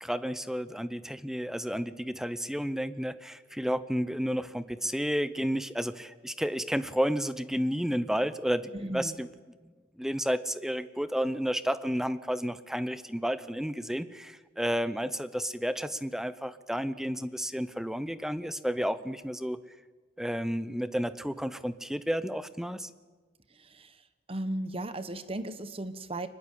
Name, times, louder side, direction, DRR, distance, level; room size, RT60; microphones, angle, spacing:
voice 1, 0.0-9.3 9.6-9.7 10.0-19.6 20.2-22.9, equal, 5° right, 14 dB, 0.8 m, -31 dB
voice 2, 8.7-9.2 23.6-23.9 24.3-26.3, right 1 dB, 30° right, 12 dB, 1.2 m, -36 dB
24.0 x 20.5 x 8.4 m, 1.4 s
head